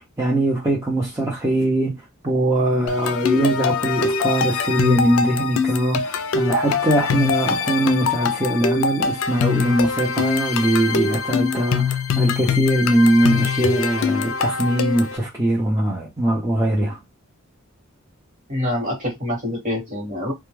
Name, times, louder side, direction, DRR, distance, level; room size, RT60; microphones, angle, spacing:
voice 1, 0.0-17.0, right 1 dB, 15° right, 0.6 m, -21 dB
sound 1, 2.9-15.2, left 5 dB, 65° left, 0.3 m, -23 dB
voice 2, 18.5-20.3, left 1 dB, 35° right, 1.3 m, -26 dB
2.2 x 2.2 x 3.1 m
head